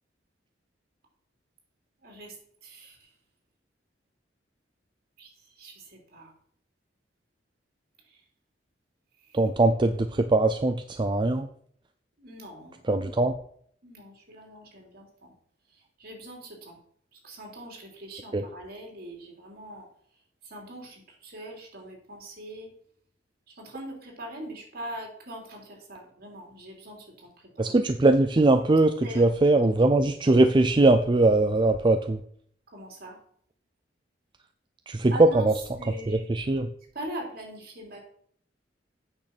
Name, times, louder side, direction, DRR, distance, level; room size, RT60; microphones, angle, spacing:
voice 1, 2.0-2.3 2.6-3.1 5.2-5.3 5.6-6.3 8.1-8.2 12.2-12.8 13.8-15.3 15.7-16.8 17.1-19.9 20.4-22.7 23.5-27.7 29.0-29.2 29.6-29.8 32.7-33.2 35.1-35.5 35.8-36.2 36.9-38.0, right 1 dB, 55° right, 0 dB, 3.2 m, -42 dB
voice 2, 9.3-11.5 12.8-13.3 18.3-18.4 27.6-32.2 34.9-35.5 36.1-36.7, right 2 dB, 25° right, 7 dB, 0.5 m, -21 dB
8.9 x 6.4 x 6.0 m, 0.63 s
head